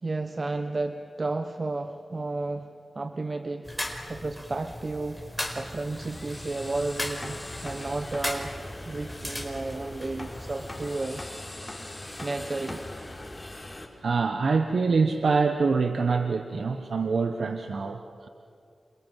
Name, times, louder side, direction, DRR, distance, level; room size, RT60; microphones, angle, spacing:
voice 1, 0.0-8.5 8.8-11.2 12.2-12.9, right 2 dB, 50° right, 8 dB, 1.1 m, -33 dB
sound 1, 3.6-11.0, left 1 dB, 5° left, 4.5 m, -38 dB
sound 2, 5.6-13.9, left 1 dB, 25° left, 4.2 m, -41 dB
voice 2, 14.0-18.3, right 4 dB, 75° right, 7 dB, 1.2 m, -25 dB
28.0 x 27.5 x 7.5 m, 2.5 s
cardioid pair, 45°, 0 cm